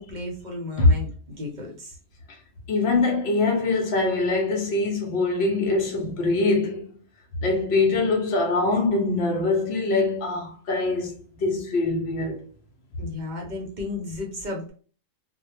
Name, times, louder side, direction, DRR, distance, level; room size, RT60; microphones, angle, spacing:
voice 1, 0.0-2.0 13.0-14.7, left 2 dB, 50° right, 0.6 m, -34 dB
voice 2, 2.7-6.9 7.4-12.4, left 3 dB, 65° left, 0.7 m, -23 dB
2.2 x 2.1 x 3.0 m
omnidirectional pair, 1.4 m